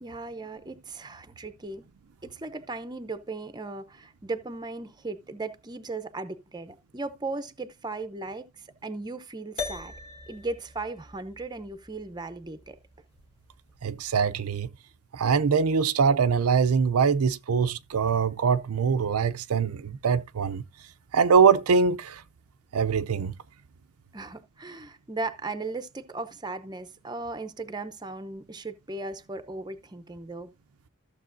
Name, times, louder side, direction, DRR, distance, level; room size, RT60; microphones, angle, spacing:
voice 1, 0.0-1.8 2.2-8.5 8.8-9.9 10.3-12.8 24.1-30.5, right 3 dB, 20° right, 0.7 m, -37 dB
sound 1, 9.6-14.2, left 4 dB, 30° left, 2.0 m, -42 dB
voice 2, 13.8-14.7 15.1-20.6 21.1-22.2 22.7-23.3, right 6 dB, 75° right, 0.5 m, -23 dB
14.0 x 6.8 x 2.6 m
head